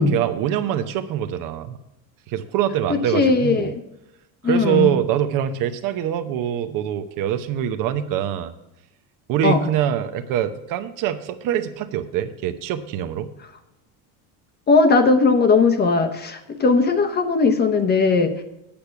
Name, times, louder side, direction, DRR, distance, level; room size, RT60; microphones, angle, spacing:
voice 1, 0.0-1.8 2.3-3.7 4.4-8.5 9.3-13.3, right 10 dB, 50° right, 10 dB, 0.8 m, -24 dB
voice 2, 3.1-3.8 4.4-4.9 9.4-9.6 14.7-18.3, left 4 dB, 25° left, 7 dB, 0.9 m, -18 dB
8.7 x 8.4 x 5.8 m, 0.92 s
cardioid pair, 150°, 43 cm